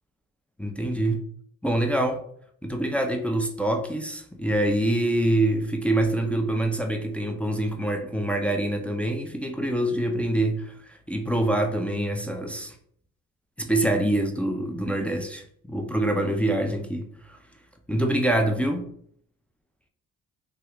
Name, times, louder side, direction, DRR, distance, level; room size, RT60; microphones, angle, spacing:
voice 1, 0.6-1.2 1.6-2.2 2.6-12.8 13.6-17.4 17.9-18.9, right 1 dB, 5° left, 0.3 m, -25 dB
2.8 x 2.3 x 3.3 m
cardioid pair, 90°, 30 cm